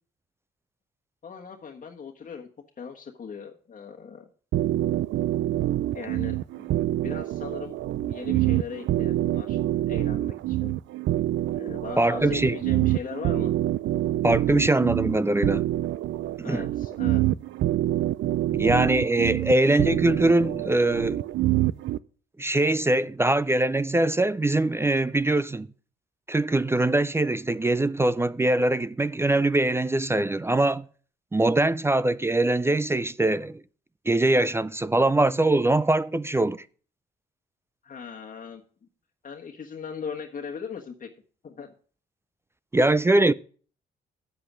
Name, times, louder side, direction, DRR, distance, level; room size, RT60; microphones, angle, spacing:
voice 1, 1.2-2.5 2.8-4.3 5.9-6.7 7.0-9.6 9.9-10.8 11.5-13.5 16.4-17.2 37.8-38.6 39.2-41.1 41.4-41.7, left 6 dB, 40° left, 1.3 m, -39 dB
sound 1, 4.5-22.0, right 14 dB, 75° right, 0.5 m, -26 dB
voice 2, 12.0-12.6 14.2-15.6 16.4-16.7 18.5-21.2 22.4-25.7 26.3-30.8 31.3-33.6 34.1-36.6 42.7-43.3, right 2 dB, 15° right, 0.4 m, -22 dB
8.6 x 7.8 x 6.2 m
cardioid pair, 90°, 20 cm